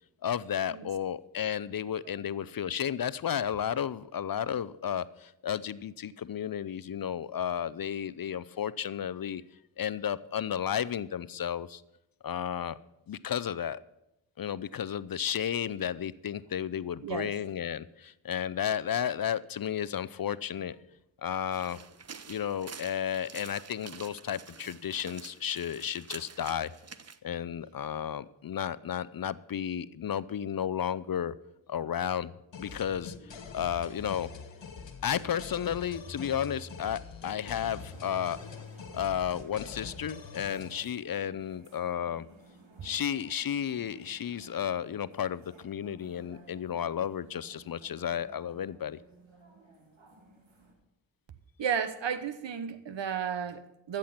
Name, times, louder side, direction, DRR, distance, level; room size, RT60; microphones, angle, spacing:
voice 1, 0.2-9.4 9.8-11.8 12.2-12.8 13.1-13.8 14.4-20.8 21.2-21.8 22.3-26.7 27.2-31.3 31.7-32.3 32.6-33.1 33.5-34.3 35.0-38.4 38.9-42.3 42.8-49.0, left 9 dB, 50° left, 0.6 m, -33 dB
sound 1, 21.5-27.2, right 6 dB, 35° right, 0.7 m, -48 dB
sound 2, 32.5-40.9, left 5 dB, 70° left, 1.5 m, -44 dB
sound 3, 37.9-50.7, right 2 dB, 90° right, 2.3 m, -57 dB
voice 2, 51.6-54.0, right 7 dB, 70° right, 1.1 m, -33 dB
13.5 x 7.7 x 5.8 m
cardioid pair, 45°, 46 cm